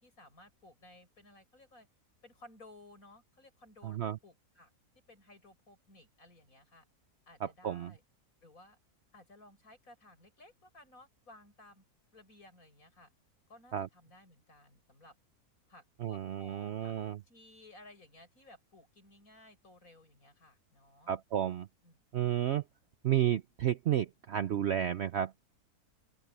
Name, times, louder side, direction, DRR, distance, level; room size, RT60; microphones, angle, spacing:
voice 1, 0.0-1.9 2.2-4.7 5.1-6.9 7.3-8.0 8.4-8.8 9.1-11.8 12.1-13.1 13.5-15.1 15.7-16.9 17.2-21.1 21.8-22.0, left 1 dB, 60° left, 7.7 m, -58 dB
voice 2, 3.8-4.2 7.6-7.9 13.7-13.9 16.0-17.2 21.1-21.7 22.1-22.6 23.0-25.3, right 11 dB, 60° right, 0.7 m, -31 dB
open air
omnidirectional pair, 1.6 m